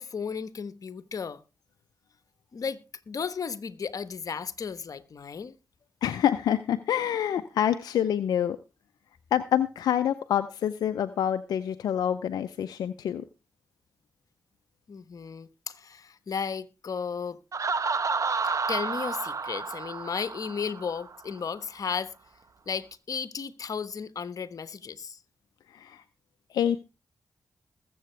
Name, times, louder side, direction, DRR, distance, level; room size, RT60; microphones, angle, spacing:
voice 1, 0.0-1.4 2.5-5.5 14.9-17.4 18.4-22.1 22.7-25.2, left 6 dB, 65° left, 1.1 m, -34 dB
voice 2, 6.0-8.6 9.3-13.2 25.7-26.0 26.5-26.9, left 10 dB, 90° left, 0.5 m, -27 dB
Laughter, 17.5-21.2, right 4 dB, 55° right, 1.1 m, -30 dB
21.0 x 7.8 x 3.3 m
supercardioid pair, 45°, 6 cm